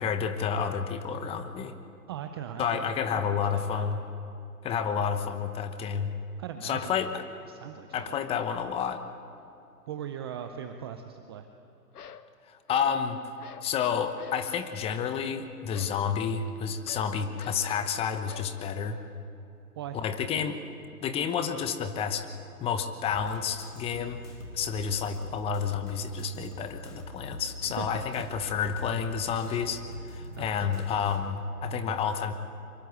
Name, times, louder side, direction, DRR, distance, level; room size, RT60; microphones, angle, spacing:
voice 1, 0.0-1.7 2.6-4.0 4.6-6.1 6.6-7.2 7.9-9.0 12.5-13.2 13.6-19.0 19.9-20.6 21.0-22.3 22.6-24.2 24.5-29.8 30.1-32.3, left 7 dB, 10° left, 9 dB, 0.9 m, -30 dB
voice 2, 2.1-3.0 3.3-3.8 6.4-7.0 7.5-8.2 9.9-11.5 19.7-20.0 27.6-28.2 30.4-31.0, right 9 dB, 15° right, 7 dB, 0.5 m, -40 dB
sound 1, 10.2-10.4 11.9-12.3 12.7-13.0 13.4-13.8 14.2-14.5 15.7-18.7, left 7 dB, 70° left, 1.4 m, -47 dB
sound 2, 23.0-31.2, left 1 dB, 85° left, 5.9 m, -43 dB
24.5 x 24.0 x 8.1 m, 2.7 s
hypercardioid pair, 135°, 47 cm